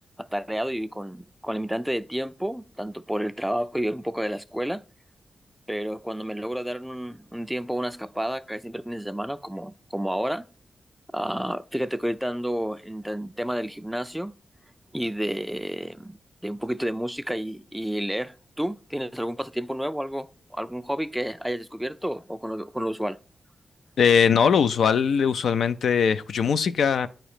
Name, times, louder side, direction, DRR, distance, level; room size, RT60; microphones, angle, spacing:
voice 1, 0.2-4.8 5.7-10.4 11.1-14.3 14.9-16.2 16.4-23.2, equal, 5° right, 0.3 m, -30 dB
voice 2, 24.0-27.1, left 7 dB, 85° left, 0.3 m, -21 dB
8.8 x 3.0 x 4.9 m
wide cardioid pair, 95°, 0 cm